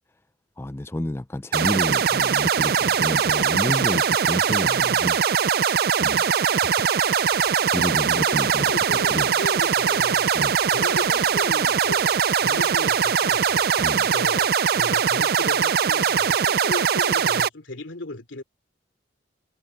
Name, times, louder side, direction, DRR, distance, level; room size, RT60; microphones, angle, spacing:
voice 1, 0.6-5.2 6.0-6.7 7.7-8.7 9.1-9.3 10.3-10.5 13.8-14.1, left 1 dB, 15° left, 0.4 m, -30 dB
sound 1, 1.5-17.5, right 7 dB, 50° right, 0.4 m, -21 dB
sound 2, 7.0-13.9, right 4 dB, 20° right, 6.7 m, -45 dB
voice 2, 8.1-10.3 10.7-13.7 14.0-18.4, left 2 dB, 90° left, 3.2 m, -36 dB
head